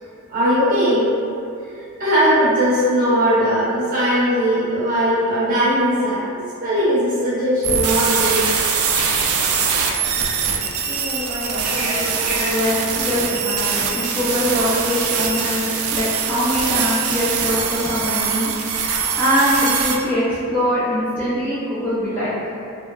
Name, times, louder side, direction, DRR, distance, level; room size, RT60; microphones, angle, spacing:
voice 1, 0.3-1.0 2.0-6.2 6.6-8.5 11.3-12.5, equal, 40° right, -9 dB, 0.7 m, -19 dB
sound 1, 7.6-20.0, right 6 dB, 80° right, 0.3 m, -22 dB
voice 2, 10.8-18.5 18.8-22.3, equal, 10° left, -11 dB, 0.3 m, -23 dB
2.8 x 2.2 x 2.3 m, 2.5 s
head